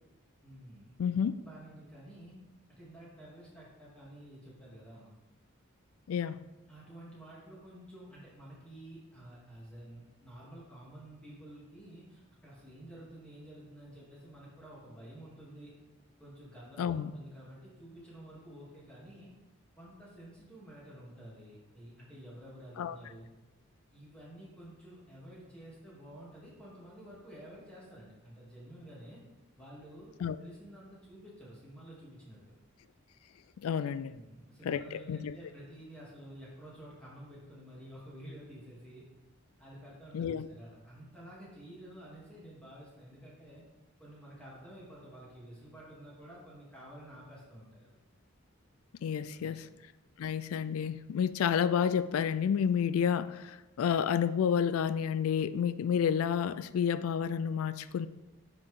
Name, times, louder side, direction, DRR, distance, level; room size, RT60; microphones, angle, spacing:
voice 1, 0.4-2.4 2.7-5.1 6.3-6.4 6.7-15.7 16.2-19.3 19.8-23.3 23.9-29.2 29.6-32.4 34.1-39.0 39.6-43.6 44.0-47.9 49.3-49.8, right 1 dB, 5° left, -7 dB, 2.9 m, -51 dB
voice 2, 1.0-1.3 6.1-6.4 16.8-17.1 22.8-23.0 30.2-30.4 33.6-34.1 34.6-35.4 40.1-40.5 49.0-49.7 50.2-58.1, left 7 dB, 85° left, 14 dB, 0.3 m, -30 dB
10.0 x 6.0 x 3.7 m, 1.1 s
head